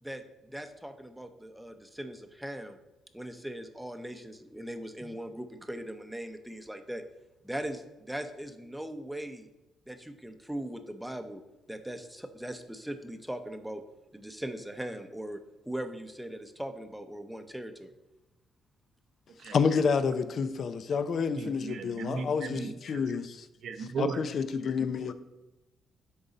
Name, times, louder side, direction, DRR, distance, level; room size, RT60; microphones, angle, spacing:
voice 1, 0.0-2.8 3.1-7.0 7.4-9.5 9.9-11.4 11.7-13.8 14.1-15.4 15.6-17.9, right 1 dB, 5° right, 7 dB, 0.7 m, -39 dB
voice 2, 19.5-23.5 23.8-25.1, left 5 dB, 55° left, 12 dB, 0.5 m, -29 dB
voice 3, 21.3-23.0 23.6-24.2, right 5 dB, 65° right, 7 dB, 0.7 m, -36 dB
10.5 x 4.0 x 4.0 m, 1.0 s
cardioid pair, 90°, 0 cm